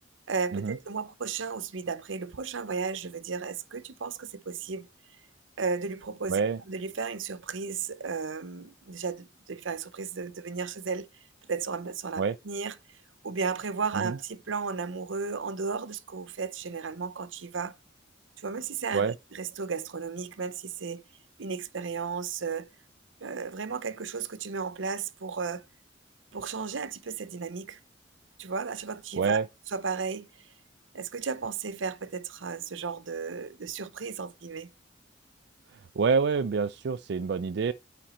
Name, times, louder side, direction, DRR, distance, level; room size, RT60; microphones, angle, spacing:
voice 1, 0.3-4.9 5.6-6.4 6.7-11.1 11.5-13.0 13.2-17.8 18.4-21.0 21.4-22.7 23.2-25.6 26.3-27.8 28.4-29.4 29.7-30.5 30.9-34.7, right 5 dB, 80° right, 0.7 m, -34 dB
voice 2, 6.3-6.6 12.2-12.4 13.9-14.2 18.9-19.1 29.2-29.5 35.7-37.7, right 5 dB, 60° right, 0.4 m, -27 dB
9.0 x 4.4 x 4.3 m
head